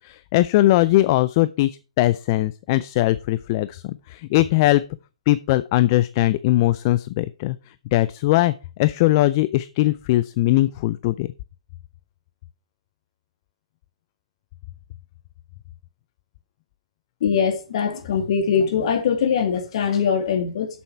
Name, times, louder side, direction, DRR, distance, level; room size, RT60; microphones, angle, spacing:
voice 1, 0.0-1.7 2.0-4.8 5.3-7.6 7.9-11.3, left 16 dB, 35° left, 0.5 m, -20 dB
voice 2, 17.2-20.7, left 7 dB, 55° left, 2.4 m, -22 dB
7.8 x 7.0 x 5.8 m
hypercardioid pair, 135°, 4 cm